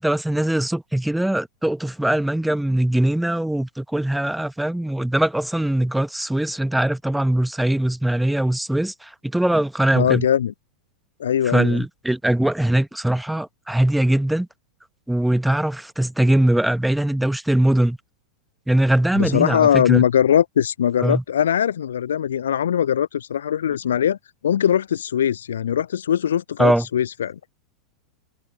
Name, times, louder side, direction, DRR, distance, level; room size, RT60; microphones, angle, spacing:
voice 1, 0.0-10.3 11.4-14.5 15.1-18.0 18.7-20.0 21.0-21.2 26.6-26.9, right 1 dB, 5° right, 1.6 m, -21 dB
voice 2, 9.9-10.5 11.2-11.8 19.2-24.2 24.4-27.4, left 9 dB, 65° left, 0.4 m, -21 dB
figure-of-eight pair, 90°, 0 cm